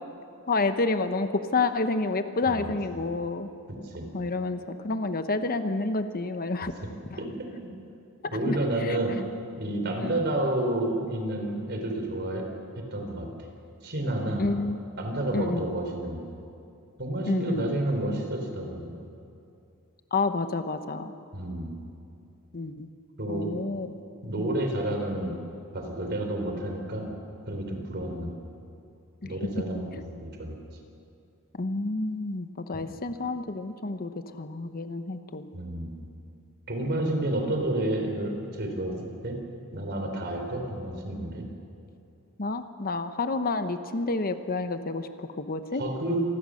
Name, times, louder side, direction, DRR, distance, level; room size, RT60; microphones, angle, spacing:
voice 1, 0.5-3.5 4.1-6.7 7.1-7.2 8.5-9.0 10.0-10.2 14.4-15.0 15.3-15.7 17.3-17.7 20.1-21.1 22.5-22.9 23.3-23.9 24.4-24.6 28.1-28.3 29.2-29.3 29.9-30.0 31.5-35.5 37.0-37.1 42.4-45.8, left 3 dB, 45° left, 9 dB, 1.0 m, -29 dB
voice 2, 3.7-4.1 7.2-7.7 8.3-9.1 9.6-12.4 12.9-13.3 13.8-14.5 15.0-16.2 17.0-18.9 21.3-21.7 23.2-23.5 24.2-25.3 25.7-27.1 27.5-28.3 29.2-30.5 32.7-32.8 35.5-35.9 36.7-39.0 39.2-39.4 39.7-41.4 45.7-46.2, right 1 dB, 50° right, 3 dB, 4.1 m, -30 dB
27.0 x 20.0 x 6.5 m, 2.6 s
head